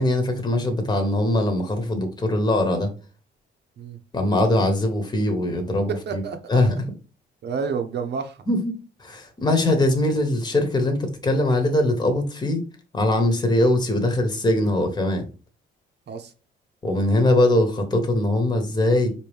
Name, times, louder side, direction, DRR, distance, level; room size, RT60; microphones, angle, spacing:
voice 1, 0.0-2.9 4.1-6.2 6.5-6.7 8.5-8.7 9.0-12.6 12.9-15.2 16.8-19.1, left 1 dB, 20° left, 5 dB, 1.2 m, -21 dB
voice 2, 5.9-6.6 7.4-8.4 16.1-16.3, right 5 dB, 60° right, 7 dB, 0.9 m, -29 dB
4.5 x 3.0 x 3.4 m, 0.35 s
cardioid pair, 90°, 20 cm